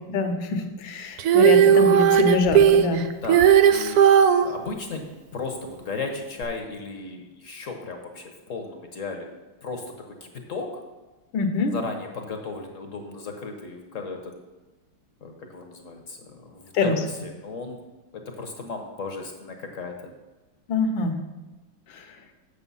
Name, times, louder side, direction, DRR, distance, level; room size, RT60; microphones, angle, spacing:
voice 1, 0.0-3.0 11.3-11.7 16.7-17.0 20.7-21.2 21.9-22.0, left 4 dB, 75° left, 7 dB, 1.7 m, -24 dB
Female singing, 1.2-4.5 6.4-6.5, right 9 dB, 80° right, 0.8 m, -16 dB
voice 2, 3.2-9.3 9.6-10.7 11.7-14.3 15.2-17.8 18.1-20.1, left 4 dB, 50° left, 4 dB, 1.1 m, -35 dB
8.2 x 6.8 x 5.5 m, 1.2 s
omnidirectional pair, 2.2 m